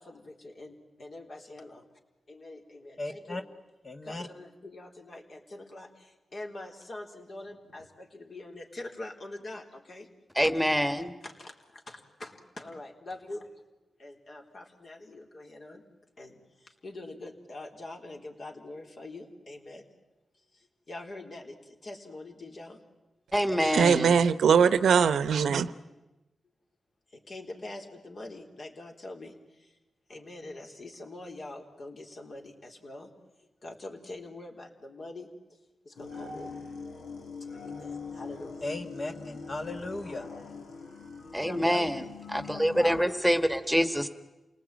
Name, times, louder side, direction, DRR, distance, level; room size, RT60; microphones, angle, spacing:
voice 1, 0.0-1.9 2.3-3.4 4.0-10.1 10.4-10.5 11.2-13.5 14.0-15.8 16.2-19.8 20.4-22.8 27.1-29.3 30.1-33.1 33.4-35.6 35.8-36.6 37.6-38.7 41.5-41.9 42.5-42.9, left 2 dB, 55° left, 2 dB, 4.1 m, -44 dB
voice 2, 3.0-3.4 3.8-4.3 38.6-40.3, left 2 dB, 40° left, 5 dB, 1.5 m, -36 dB
voice 3, 10.3-11.1 23.3-24.1 41.3-42.0 42.3-44.1, equal, ahead, 9 dB, 1.6 m, -26 dB
voice 4, 23.6-25.7, right 7 dB, 90° right, 14 dB, 0.8 m, -22 dB
sound 1, 36.0-43.0, left 4 dB, 85° left, 2.9 m, -42 dB
28.0 x 19.0 x 9.2 m, 1.1 s
cardioid pair, 60°, 0 cm